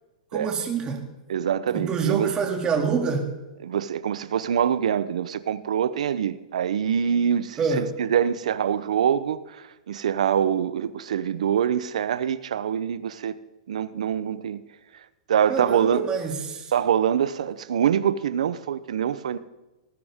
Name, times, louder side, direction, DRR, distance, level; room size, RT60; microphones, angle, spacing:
voice 1, 0.3-1.1 1.7-3.3 7.6-7.9 15.5-16.7, right 5 dB, 20° right, 2 dB, 2.5 m, -26 dB
voice 2, 1.3-2.3 3.6-13.4 13.7-14.6 15.3-16.0 16.7-19.4, right 8 dB, 80° right, 15 dB, 0.8 m, -24 dB
19.0 x 9.7 x 3.7 m, 1.1 s
hypercardioid pair, 130°, 4 cm